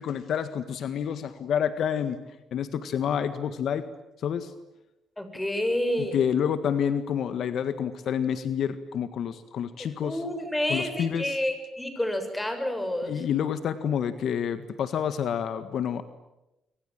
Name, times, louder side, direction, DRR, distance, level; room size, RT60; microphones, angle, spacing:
voice 1, 0.0-2.2 2.5-3.8 4.2-4.5 6.0-10.2 10.7-11.3 13.1-16.0, left 8 dB, 70° left, 11 dB, 1.7 m, -28 dB
voice 2, 5.2-6.3 9.8-13.2, left 1 dB, 10° left, 8 dB, 6.8 m, -29 dB
25.5 x 25.5 x 9.1 m, 0.94 s
cardioid pair, 90°, 0 cm